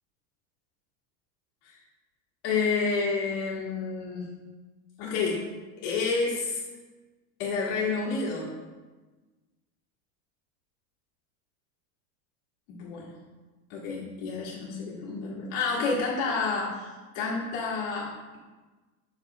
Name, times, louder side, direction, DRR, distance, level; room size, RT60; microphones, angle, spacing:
voice 1, 2.4-4.2 5.0-5.4 5.8-6.6 7.4-8.5 12.7-13.1 13.7-18.4, left 4 dB, 55° left, -6 dB, 1.7 m, -29 dB
6.5 x 3.1 x 4.7 m, 1.3 s
supercardioid pair, 175°, 44 cm